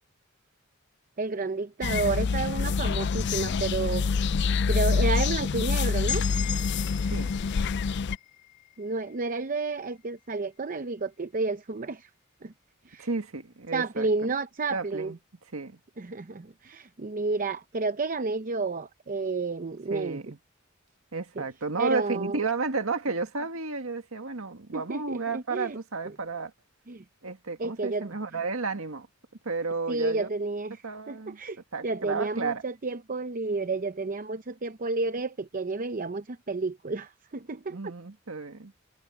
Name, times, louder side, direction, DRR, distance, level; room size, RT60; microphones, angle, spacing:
voice 1, 1.2-4.1 4.7-6.2 8.8-12.1 12.4-12.5 12.8-13.1 13.7-15.1 16.0-20.2 21.4-21.5 21.8-22.4 24.7-25.8 26.0-26.1 26.9-27.0 27.6-28.1 29.9-37.9, right 3 dB, 40° right, 0.7 m, -31 dB
sound 1, 1.8-8.2, left 5 dB, 55° left, 0.4 m, -26 dB
sound 2, 6.1-9.9, left 9 dB, 35° left, 1.9 m, -39 dB
voice 2, 13.0-14.3 14.7-15.2 15.5-15.8 19.9-20.4 21.1-26.5 27.2-29.1 29.5-30.3 30.8-31.4 31.7-32.6 37.7-38.7, right 4 dB, 80° right, 1.9 m, -32 dB
head